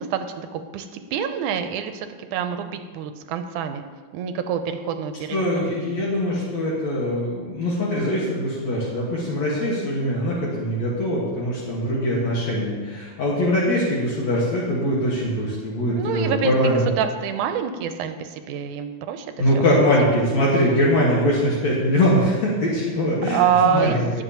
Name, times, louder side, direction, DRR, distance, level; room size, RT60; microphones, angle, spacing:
voice 1, 0.0-3.8 4.1-5.5 16.0-16.5 17.0-19.3 19.8-20.1 23.3-24.2, right 8 dB, 85° right, 8 dB, 2.1 m, -26 dB
voice 2, 5.3-16.8 19.4-24.2, equal, 65° left, -5 dB, 2.8 m, -22 dB
20.0 x 7.3 x 2.9 m, 1.4 s
omnidirectional pair, 3.6 m